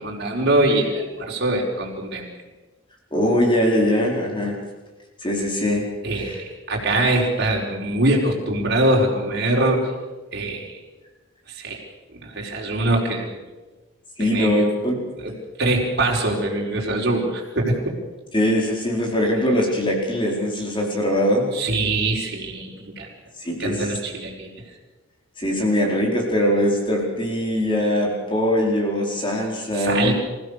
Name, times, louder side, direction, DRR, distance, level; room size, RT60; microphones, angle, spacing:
voice 1, 0.0-2.3 6.0-9.9 10.3-10.8 11.5-11.8 12.1-13.3 14.2-14.7 15.2-18.0 21.5-23.1 23.6-24.5 29.7-30.1, right 1 dB, 50° right, -2 dB, 4.9 m, -23 dB
voice 2, 3.1-4.6 5.2-6.4 14.2-15.1 18.3-21.5 23.4-23.9 25.4-30.1, equal, 20° left, 0 dB, 4.7 m, -22 dB
27.5 x 16.0 x 6.7 m, 1.2 s
head